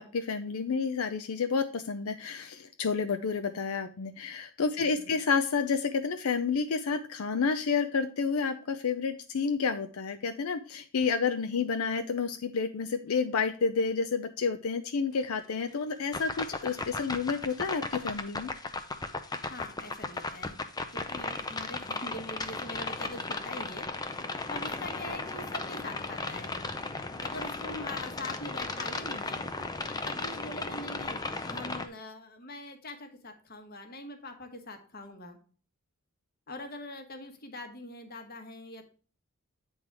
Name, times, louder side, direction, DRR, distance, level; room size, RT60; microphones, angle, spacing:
voice 1, 0.0-18.5, left 5 dB, 75° left, 8 dB, 0.5 m, -30 dB
voice 2, 4.8-5.2 19.4-20.6 20.9-26.5 27.2-29.4 30.0-35.4 36.5-38.8, left 2 dB, 45° left, 5 dB, 1.2 m, -43 dB
sound 1, 16.1-31.9, left 3 dB, 20° left, 0.5 m, -36 dB
8.9 x 3.9 x 4.6 m, 0.40 s
head